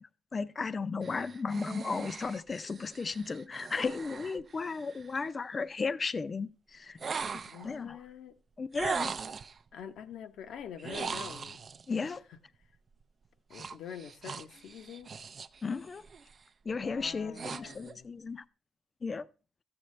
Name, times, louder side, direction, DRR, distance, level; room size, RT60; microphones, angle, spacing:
voice 1, 0.0-7.0 7.6-8.0 8.6-9.1 11.9-12.2 15.6-16.0 16.7-18.4 19.0-19.3, left 4 dB, 35° left, 0.5 m, -35 dB
sound 1, 1.0-5.2 7.0-7.8 8.7-9.6 10.8-11.9 13.5-15.6 16.0-16.3 16.9-18.0, right 5 dB, 45° right, 0.4 m, -40 dB
voice 2, 7.5-8.4 9.7-11.6 12.0-12.4 13.5-15.1 16.8-18.1, left 8 dB, 75° left, 0.8 m, -46 dB
13.5 x 7.8 x 3.2 m
cardioid pair, 90°, 0 cm